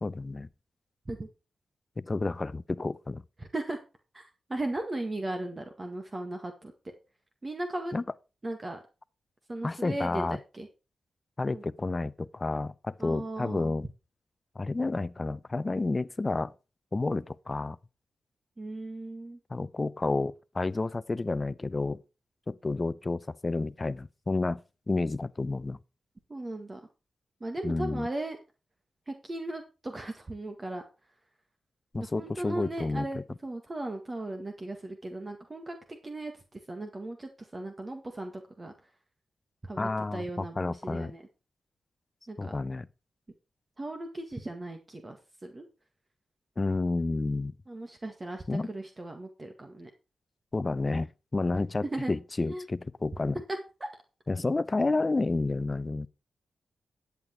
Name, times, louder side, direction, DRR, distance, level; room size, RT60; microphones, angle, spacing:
voice 1, 0.0-0.5 2.0-3.2 7.9-8.0 9.6-10.4 11.4-13.9 14.6-16.5 16.9-17.8 19.5-22.0 22.5-24.6 24.9-25.8 27.6-28.1 31.9-33.2 39.8-41.1 42.4-42.9 46.6-47.5 48.5-48.7 50.5-53.4 54.3-56.1, left 3 dB, 35° left, 0.6 m, -30 dB
voice 2, 3.4-3.8 4.1-6.7 7.4-7.9 8.4-8.8 9.5-10.7 11.5-11.6 13.0-13.7 18.6-19.4 26.3-26.8 27.4-28.4 29.1-30.8 31.9-38.7 39.6-41.2 42.3-42.5 43.8-45.2 45.4-45.7 47.7-49.9 51.9-52.1 52.4-52.6 53.8-53.9, right 2 dB, 35° right, 1.8 m, -37 dB
11.0 x 8.3 x 4.6 m
cardioid pair, 55°, 0 cm